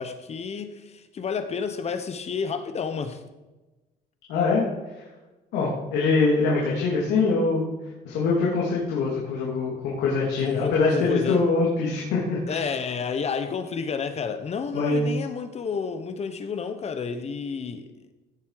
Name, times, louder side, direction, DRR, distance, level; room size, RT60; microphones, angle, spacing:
voice 1, 0.0-3.2 10.4-11.4 12.5-17.9, left 5 dB, 40° left, 1.2 m, -30 dB
voice 2, 4.3-4.7 4.9-5.0 5.5-7.7 8.0-12.6 14.7-15.0, left 3 dB, 85° left, 3.0 m, -23 dB
16.0 x 7.4 x 5.0 m
cardioid pair, 110°, 17 cm